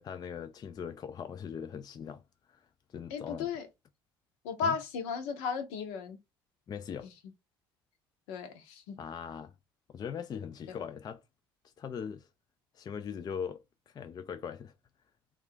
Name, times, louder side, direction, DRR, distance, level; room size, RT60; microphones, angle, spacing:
voice 1, 0.0-2.2 2.5-2.6 2.9-3.5 4.6-4.8 6.7-7.1 9.0-9.5 9.9-11.2 11.8-12.3 12.7-14.7, left 7 dB, 35° left, 0.3 m, -40 dB
voice 2, 3.1-3.7 4.4-6.2 8.3-9.0 10.7-10.8, left 5 dB, 70° left, 0.7 m, -35 dB
2.4 x 2.3 x 3.5 m
figure-of-eight pair, 55°, 12 cm